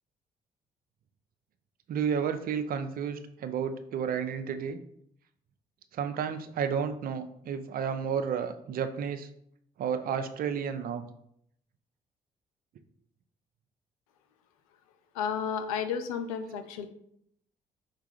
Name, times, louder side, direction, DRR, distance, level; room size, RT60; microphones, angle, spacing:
voice 1, 1.9-4.8 5.9-9.3 9.8-11.0, right 7 dB, 55° right, 9 dB, 0.5 m, -31 dB
voice 2, 15.1-16.9, left 7 dB, 90° left, 9 dB, 0.4 m, -32 dB
4.5 x 2.4 x 4.9 m, 0.72 s
hypercardioid pair, 55°, 17 cm